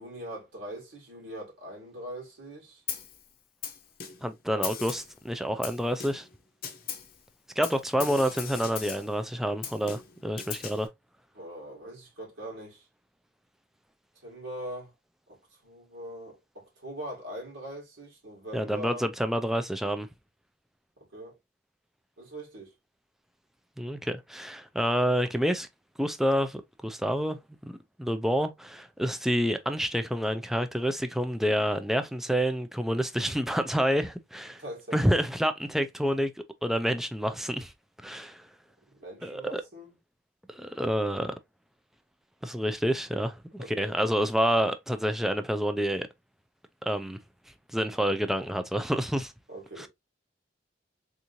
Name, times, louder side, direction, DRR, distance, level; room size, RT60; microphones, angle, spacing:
voice 1, 0.0-2.8 4.5-4.7 11.3-12.8 14.2-14.9 15.3-15.4 15.6-19.1 21.1-21.3 22.2-22.7 34.6-35.0 38.9-39.9 43.6-43.9 49.5-49.9, right 1 dB, 90° right, 2.1 m, -41 dB
Snare drum, 2.9-3.2 3.6-4.3 4.6-5.2 5.6-6.3 6.6-7.2 7.6-9.2 9.6-10.9, left 8 dB, 55° left, 0.7 m, -38 dB
voice 2, 4.2-6.3 7.6-10.9 18.5-20.1 23.8-25.7 26.0-34.6 34.9-36.3 36.6-37.7 38.0-38.4 39.2-39.6 40.5-41.3 42.4-46.1 46.8-47.2 47.7-49.3 49.8-49.9, equal, ahead, 0.3 m, -28 dB
3.6 x 3.0 x 2.5 m
head